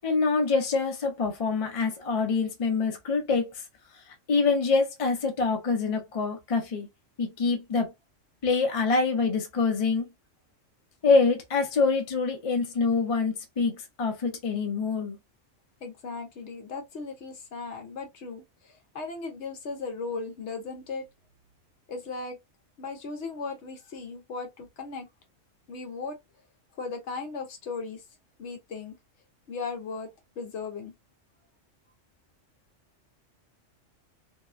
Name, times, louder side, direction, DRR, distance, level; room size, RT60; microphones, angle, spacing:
voice 1, 0.0-3.6 4.3-6.9 7.2-7.9 8.4-10.1 11.0-15.2, left 4 dB, 35° left, 0.6 m, -25 dB
voice 2, 15.8-21.0 21.9-22.4 22.8-25.1 25.7-26.2 26.7-28.0 28.4-28.9 29.5-30.1 30.4-30.9, left 4 dB, 70° left, 0.9 m, -37 dB
2.7 x 2.1 x 2.4 m
omnidirectional pair, 1.3 m